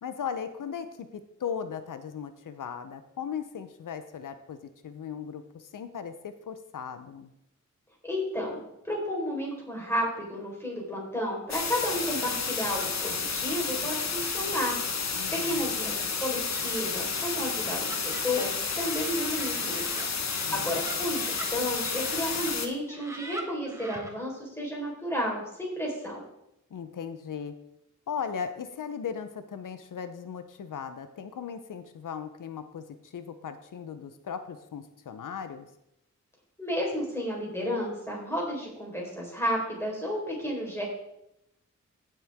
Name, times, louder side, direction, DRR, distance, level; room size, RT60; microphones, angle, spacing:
voice 1, 0.0-7.3 15.1-15.8 20.4-20.8 26.7-27.6 28.1-35.7, left 7 dB, 90° left, 10 dB, 0.7 m, -38 dB
voice 2, 8.0-14.8 15.3-19.8 20.5-26.2 36.6-40.8, equal, 10° left, -3 dB, 4.2 m, -32 dB
sound 1, 11.5-22.7, left 5 dB, 60° left, 1.1 m, -31 dB
Laughter, 16.3-22.5 22.9-24.1, right 1 dB, 10° right, 1.6 m, -43 dB
15.5 x 7.6 x 3.6 m, 0.81 s
wide cardioid pair, 115°, 31 cm